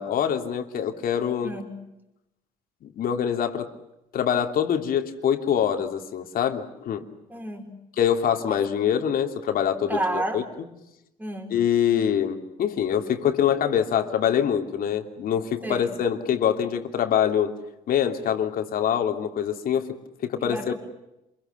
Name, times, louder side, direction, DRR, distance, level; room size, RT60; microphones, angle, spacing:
voice 1, 0.0-1.5 2.8-3.7 4.1-7.0 8.0-10.0 10.3-10.4 11.5-17.5 17.9-19.8 20.2-20.7, left 9 dB, 60° left, 6 dB, 3.0 m, -24 dB
voice 2, 7.3-7.7 9.9-10.5 11.2-11.6 15.6-15.9 20.4-20.7, right 1 dB, 10° right, 2 dB, 5.4 m, -30 dB
27.5 x 23.0 x 7.0 m, 0.89 s
cardioid pair, 110°, 17 cm